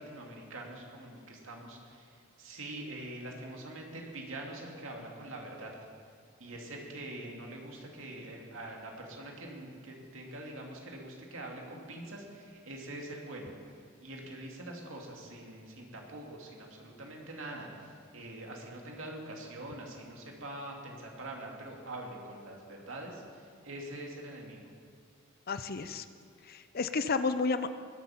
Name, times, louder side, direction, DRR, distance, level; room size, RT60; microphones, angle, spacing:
voice 1, 0.0-2.0 2.4-5.7 6.4-13.5 14.0-17.7 18.1-23.2 23.6-24.6, right 1 dB, 70° right, 0 dB, 2.5 m, -44 dB
voice 2, 25.5-26.0 26.5-27.8, left 4 dB, 45° left, 11 dB, 0.6 m, -31 dB
20.5 x 8.1 x 5.8 m, 2.2 s
head